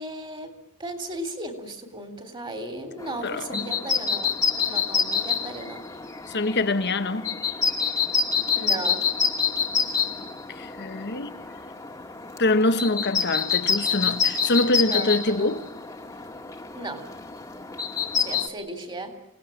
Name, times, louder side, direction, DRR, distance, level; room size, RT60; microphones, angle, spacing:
voice 1, 0.0-5.8 8.5-9.1 14.7-15.6 16.7-17.1 18.2-19.2, right 1 dB, 20° right, 3.6 m, -36 dB
sound 1, 3.0-18.5, left 6 dB, 15° left, 1.7 m, -27 dB
voice 2, 3.2-3.7 6.3-7.4 10.6-11.3 12.4-15.6, left 2 dB, 50° left, 1.3 m, -24 dB
27.5 x 19.0 x 8.8 m
head